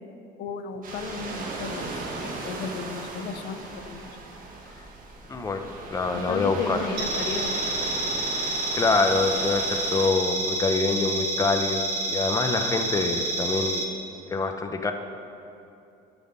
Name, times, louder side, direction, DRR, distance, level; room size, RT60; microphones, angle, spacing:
voice 1, 0.4-4.2 6.1-7.6, left 5 dB, 75° left, 8 dB, 0.8 m, -35 dB
sound 1, 0.8-10.1, right 3 dB, 55° right, 1.6 m, -37 dB
voice 2, 5.3-6.8 8.4-13.8 14.3-14.9, left 3 dB, 20° left, 6 dB, 0.7 m, -26 dB
sound 2, 7.0-13.8, right 2 dB, 85° right, 1.4 m, -29 dB
12.0 x 6.1 x 5.3 m, 2.7 s
cardioid pair, 110°, 17 cm